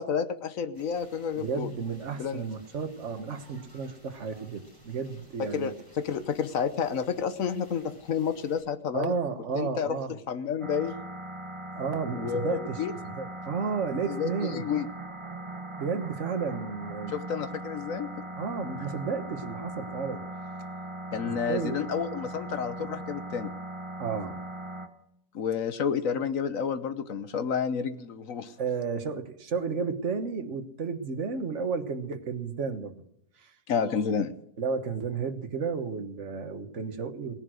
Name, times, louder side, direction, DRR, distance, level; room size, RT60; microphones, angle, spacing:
voice 1, 0.0-1.7 2.2-2.5 5.5-9.1 9.5-10.0 10.3-11.0 12.1-12.9 14.1-14.9 17.1-18.1 21.1-23.5 25.3-28.5 33.7-34.3, left 7 dB, 55° left, 11 dB, 1.2 m, -30 dB
sound 1, 0.7-8.6, right 1 dB, 10° left, 6.4 m, -56 dB
voice 2, 1.4-5.7 8.9-10.2 11.7-14.6 15.8-17.2 18.4-20.2 21.2-21.7 24.0-24.4 28.6-32.9 33.4-33.5 34.6-37.4, right 5 dB, 45° right, 8 dB, 1.5 m, -32 dB
sound 2, 10.6-24.9, right 1 dB, 20° right, 1.0 m, -39 dB
18.5 x 10.5 x 6.3 m, 0.77 s
omnidirectional pair, 1.8 m